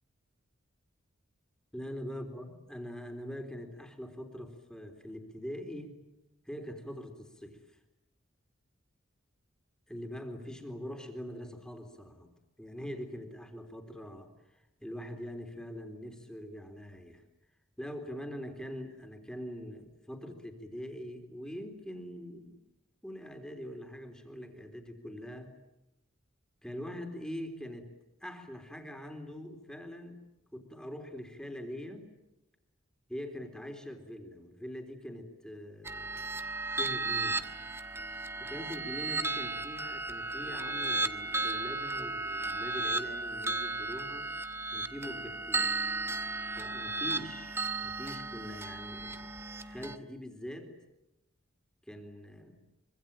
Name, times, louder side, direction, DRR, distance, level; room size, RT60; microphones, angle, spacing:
voice 1, 1.7-5.9 6.5-7.8 9.9-12.3 12.6-17.2 17.8-22.6 23.0-25.5 26.6-27.9 28.2-30.2 30.5-32.1 33.1-37.4 38.4-44.3 44.7-45.7 46.5-49.4 49.6-50.7 51.9-52.6, equal, 5° left, 4 dB, 3.7 m, -43 dB
sound 1, 35.8-50.0, right 3 dB, 10° right, 1.2 m, -35 dB
25.5 x 25.0 x 9.0 m, 0.91 s
head